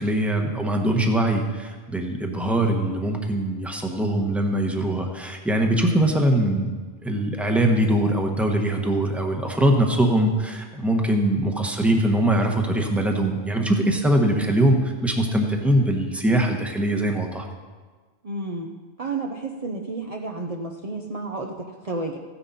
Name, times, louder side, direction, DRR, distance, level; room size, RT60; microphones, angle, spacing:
voice 1, 0.0-6.7 7.0-17.4, right 1 dB, ahead, 3 dB, 1.1 m, -22 dB
voice 2, 18.2-18.7 19.0-22.2, right 3 dB, 35° right, 1 dB, 0.8 m, -31 dB
15.0 x 9.9 x 4.2 m, 1.4 s
omnidirectional pair, 1.2 m